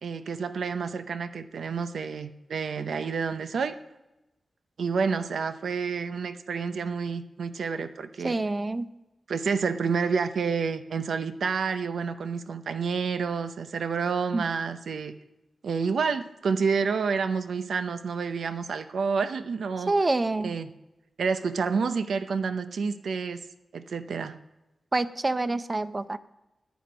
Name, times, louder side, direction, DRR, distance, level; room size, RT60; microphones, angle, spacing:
voice 1, 0.0-3.8 4.8-8.4 9.3-15.1 15.6-19.9 20.4-20.7 21.2-23.4 23.7-24.4, right 5 dB, 90° right, 10 dB, 0.7 m, -29 dB
voice 2, 8.2-8.9 14.3-14.4 19.9-20.5 24.9-26.2, right 2 dB, 25° right, 12 dB, 0.6 m, -26 dB
14.0 x 10.5 x 5.1 m, 0.98 s
wide cardioid pair, 125°, 0 cm